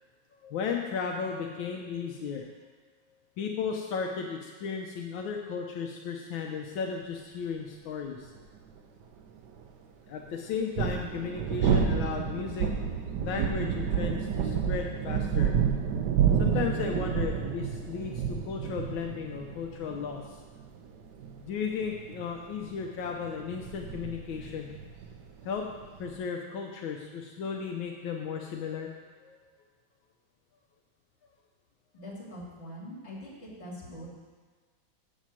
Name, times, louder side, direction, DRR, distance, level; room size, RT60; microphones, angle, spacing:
voice 1, 0.3-2.6 3.4-8.3 10.1-12.7 13.2-15.5 16.4-20.4 21.4-24.7 25.4-25.6 26.0-28.9 29.2-29.4, left 6 dB, 80° left, 1 dB, 1.5 m, -35 dB
sound 1, 8.4-8.5 10.5-26.1, right 7 dB, 65° right, 1.3 m, -30 dB
voice 2, 31.9-34.1, equal, 35° left, -5 dB, 3.0 m, -43 dB
7.3 x 7.2 x 7.4 m, 1.5 s
omnidirectional pair, 2.1 m